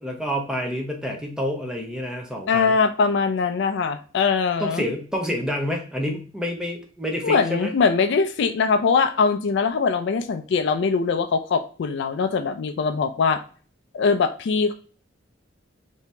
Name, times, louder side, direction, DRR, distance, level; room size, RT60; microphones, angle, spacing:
voice 1, 0.0-2.7 4.6-7.7, equal, 5° right, 1 dB, 0.7 m, -28 dB
voice 2, 2.5-4.8 7.2-13.4 13.9-14.7, left 5 dB, 65° left, 9 dB, 0.4 m, -22 dB
2.9 x 2.7 x 3.2 m, 0.40 s
head